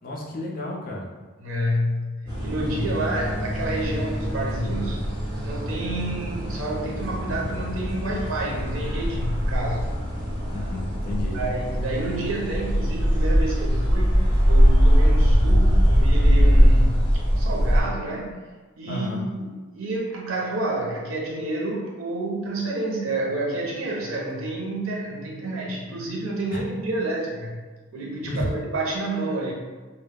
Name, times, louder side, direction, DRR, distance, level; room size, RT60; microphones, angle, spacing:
voice 1, 0.0-1.1 10.5-11.4 18.9-19.2 26.5-26.6 28.2-28.5, left 1 dB, 45° left, -2 dB, 0.5 m, -31 dB
voice 2, 1.4-5.0 5.4-9.8 11.3-14.2 14.5-17.1 17.3-18.4 18.8-27.6 27.9-29.5, right 1 dB, 85° right, -2 dB, 0.6 m, -29 dB
sound 1, 2.3-17.8, equal, 20° right, 1.1 m, -21 dB
2.2 x 2.0 x 3.3 m, 1.3 s
head